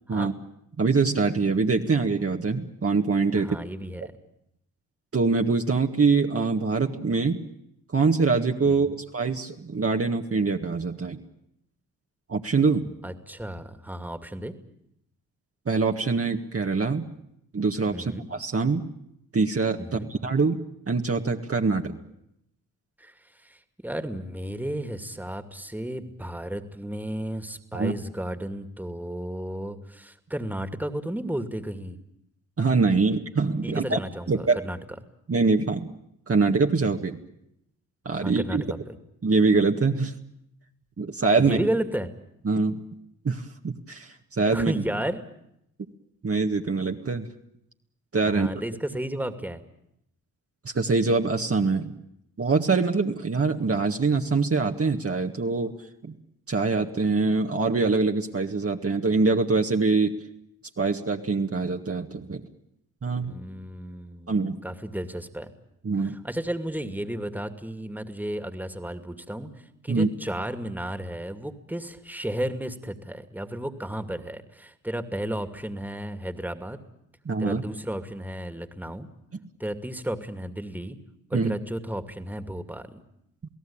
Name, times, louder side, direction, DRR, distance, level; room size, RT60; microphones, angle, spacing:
voice 1, 0.8-3.6 5.1-7.4 7.9-11.2 12.3-12.9 15.7-17.1 17.5-18.9 19.3-20.6 20.9-22.0 27.7-27.9 32.6-34.0 34.3-34.6 35.3-35.9 36.3-37.2 38.1-38.6 39.2-40.2 41.0-41.6 42.5-42.8 43.2-44.8 46.2-47.2 48.1-48.5 50.7-51.9 52.4-55.7 56.0-56.1 56.5-60.1 60.8-62.4 63.0-63.3 64.3-64.6 65.8-66.2 69.9-70.1 77.3-77.6 81.3-81.5, right 4 dB, 35° right, 2 dB, 1.8 m, -24 dB
voice 2, 3.3-4.1 8.6-9.0 13.0-14.6 17.9-18.3 19.8-20.1 23.0-32.0 33.0-33.1 33.6-34.8 38.2-38.9 41.3-42.1 44.5-45.2 48.2-49.6 63.1-65.5 66.0-76.8 77.4-79.1 79.6-81.0 81.3-83.0, right 1 dB, 5° right, 8 dB, 2.4 m, -33 dB
28.5 x 17.0 x 8.8 m, 0.78 s
supercardioid pair, 55°, 38 cm